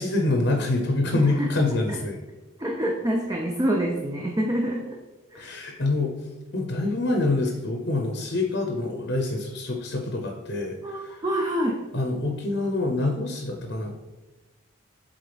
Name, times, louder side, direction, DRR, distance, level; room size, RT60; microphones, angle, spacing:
voice 1, 0.0-2.2 5.3-6.1 6.5-11.2 11.9-13.9, left 2 dB, 60° left, 3 dB, 0.8 m, -26 dB
voice 2, 1.1-1.5 1.9-2.0 2.6-5.0 5.3-5.8 10.8-11.8, right 1 dB, 15° right, 0 dB, 0.5 m, -27 dB
7.9 x 3.8 x 3.4 m, 1.1 s
head